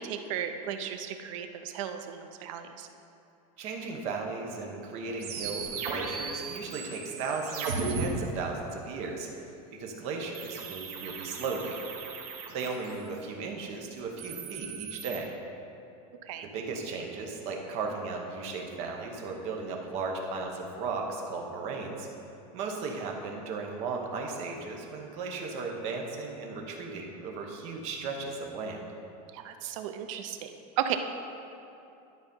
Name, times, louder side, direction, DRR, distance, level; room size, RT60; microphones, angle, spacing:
voice 1, 0.0-2.9 16.2-16.5 29.3-31.0, right 9 dB, 55° right, 7 dB, 0.6 m, -35 dB
voice 2, 3.6-9.3 9.8-11.8 12.5-15.3 16.5-22.1 22.5-28.8, right 4 dB, 35° right, 1 dB, 0.9 m, -36 dB
sound 1, 5.2-8.0 10.3-13.2 14.0-15.2, right 5 dB, 70° right, 1.1 m, -37 dB
11.5 x 4.0 x 5.4 m, 2.7 s
supercardioid pair, 175°, 20 cm